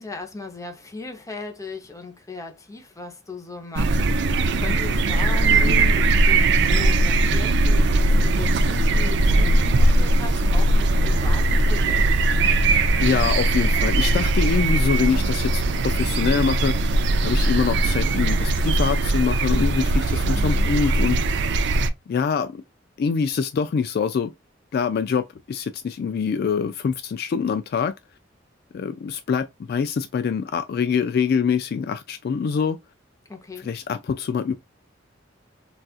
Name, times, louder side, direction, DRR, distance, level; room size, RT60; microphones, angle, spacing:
voice 1, 0.0-12.4 20.4-20.7 33.3-33.7, left 3 dB, 15° left, 0.7 m, -37 dB
sound 1, 3.8-21.9, right 2 dB, 65° right, 0.4 m, -20 dB
voice 2, 13.0-16.9 17.2-21.2 22.1-22.6 23.0-24.3 24.7-27.9 28.7-32.8 33.6-34.6, left 6 dB, 55° left, 0.3 m, -24 dB
4.0 x 2.4 x 2.3 m
head